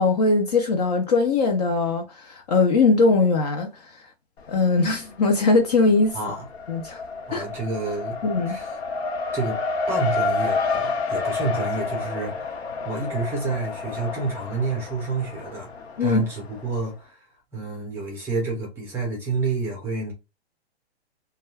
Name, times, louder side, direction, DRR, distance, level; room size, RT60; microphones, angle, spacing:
voice 1, 0.0-3.9 4.5-6.2 6.7-7.0 7.3-7.4 8.2-8.6 16.0-16.2, left 3 dB, 40° left, 0.5 m, -20 dB
Race car auto racing, 4.4-5.1 5.4-16.8, left 4 dB, 70° left, 0.8 m, -30 dB
voice 2, 6.1-6.5 7.3-8.7 9.3-9.6 9.9-12.6 12.8-15.7 16.0-17.3 17.5-20.1, right 3 dB, 5° right, 0.6 m, -29 dB
2.3 x 2.1 x 3.2 m
hypercardioid pair, 145°, 34 cm